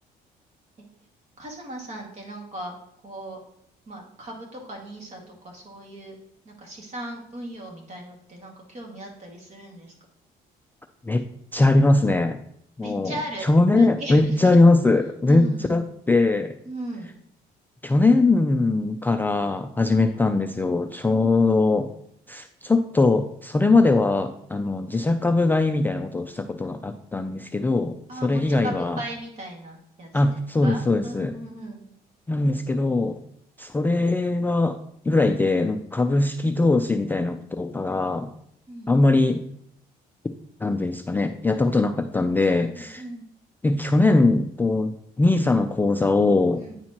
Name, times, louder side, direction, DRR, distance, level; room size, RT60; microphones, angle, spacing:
voice 1, 1.4-2.8 3.0-3.4 3.9-6.2 6.4-9.9 12.8-14.4 15.3-15.8 16.6-17.1 19.9-20.3 21.1-21.4 28.1-31.8 38.7-39.0 41.7-41.8 42.7-43.2 46.5-46.8, right 1 dB, 40° right, 0 dB, 2.0 m, -37 dB
voice 2, 11.5-12.4 12.8-13.1 13.5-16.5 17.8-21.9 22.3-28.0 28.2-29.0 30.1-31.3 32.3-33.2 33.6-34.8 35.1-38.3 38.9-39.4 40.6-43.0 43.6-44.9 45.2-46.6, left 2 dB, 10° left, 5 dB, 0.3 m, -21 dB
9.4 x 4.3 x 2.9 m, 0.70 s
cardioid pair, 110°, 17 cm